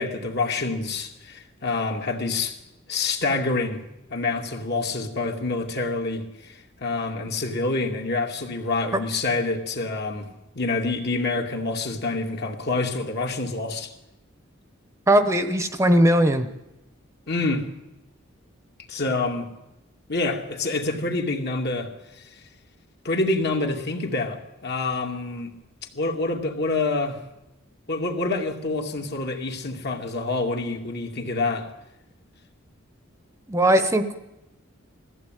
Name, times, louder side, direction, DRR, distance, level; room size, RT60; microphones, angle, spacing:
voice 1, 0.0-2.5 2.9-3.8 4.1-10.3 10.5-13.9 17.3-17.6 18.9-19.5 20.1-21.9 23.0-25.6 25.9-27.2 27.9-31.7, left 3 dB, 50° left, 2.5 m, -27 dB
voice 2, 15.1-16.5 33.5-34.1, right 1 dB, 15° right, 1.1 m, -19 dB
21.0 x 15.0 x 9.2 m
head